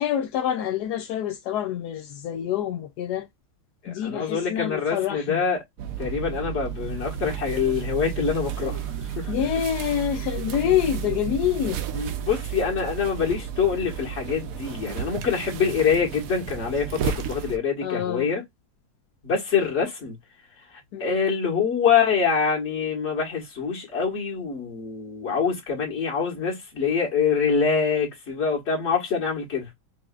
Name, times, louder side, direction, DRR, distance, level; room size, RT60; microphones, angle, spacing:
voice 1, 0.0-3.3 3.9-5.4 9.3-11.8 17.8-18.3 20.9-21.2, left 10 dB, 75° left, 0.9 m, -26 dB
voice 2, 3.8-5.6 6.0-9.3 11.9-18.4 19.2-20.2 21.0-29.7, left 6 dB, 35° left, 1.7 m, -25 dB
sound 1, 5.8-17.6, right 9 dB, 75° right, 0.7 m, -32 dB
5.5 x 2.6 x 2.4 m
omnidirectional pair, 2.2 m